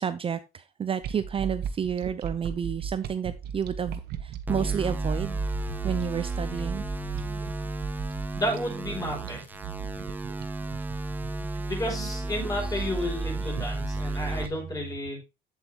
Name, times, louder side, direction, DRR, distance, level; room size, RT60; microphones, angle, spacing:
voice 1, 0.0-5.4 5.8-6.8 13.4-13.5 14.3-14.4, right 7 dB, 35° right, 12 dB, 0.5 m, -31 dB
sound 1, 1.0-14.1, right 7 dB, 70° right, 1.1 m, -37 dB
sound 2, 4.5-14.5, right 2 dB, 10° right, 1.3 m, -33 dB
voice 2, 8.4-9.4 11.7-15.2, left 1 dB, 20° left, 0 dB, 5.1 m, -32 dB
8.2 x 8.2 x 2.9 m, 0.27 s
cardioid pair, 110°, 17 cm